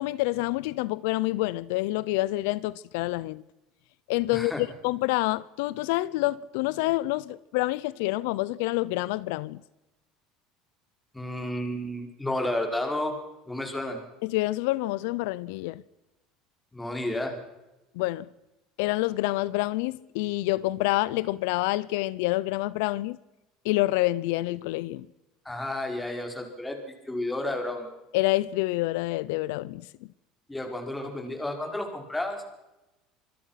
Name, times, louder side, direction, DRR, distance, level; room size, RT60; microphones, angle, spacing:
voice 1, 0.0-3.4 4.1-9.6 14.2-15.8 18.0-18.3 18.8-23.2 23.6-25.1 28.1-29.8, left 19 dB, 85° left, 0.7 m, -27 dB
voice 2, 4.3-4.6 11.1-13.1 13.5-14.0 16.7-17.4 25.4-26.8 27.1-27.9 30.5-32.5, left 1 dB, 5° left, 5.2 m, -31 dB
26.0 x 21.5 x 5.9 m
cardioid pair, 135°, 0 cm